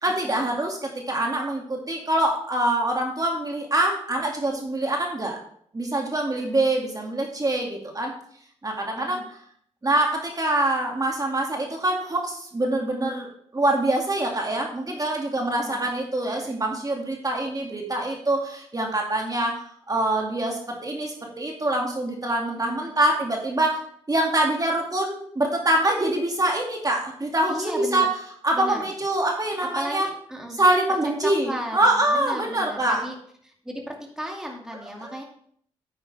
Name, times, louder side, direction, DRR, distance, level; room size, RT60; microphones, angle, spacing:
voice 1, 0.0-5.4 5.7-8.1 8.6-9.4 9.8-13.3 13.5-23.8 24.1-28.1 28.4-30.1 30.5-33.0 35.0-35.1, right 1 dB, 30° right, 0 dB, 2.3 m, -25 dB
voice 2, 15.4-15.9 16.4-16.6 22.6-23.0 27.5-28.1 28.5-28.8 29.8-30.6 31.2-33.1 33.4-35.2, equal, 5° right, 0 dB, 2.4 m, -35 dB
9.3 x 8.9 x 3.4 m, 0.63 s
supercardioid pair, 50°, 12 cm